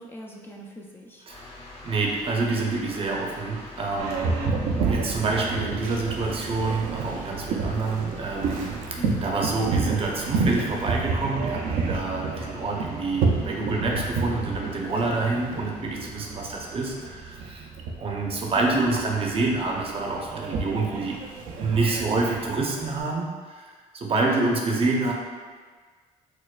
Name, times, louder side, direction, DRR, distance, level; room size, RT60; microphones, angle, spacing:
voice 1, 0.0-1.3 4.3-4.6 9.0-9.2 18.6-18.8 24.5-24.8, equal, 15° left, -1 dB, 0.4 m, -40 dB
sound 1, 1.3-17.1, left 2 dB, 45° left, 0.7 m, -46 dB
voice 2, 1.8-4.3 4.7-17.7 18.0-21.2 21.5-25.1, right 3 dB, 45° right, -1 dB, 0.6 m, -27 dB
Boat Water vehicle, 4.0-23.0, right 4 dB, 90° right, 0.4 m, -30 dB
4.3 x 2.2 x 2.3 m, 1.5 s
cardioid pair, 90°, 14 cm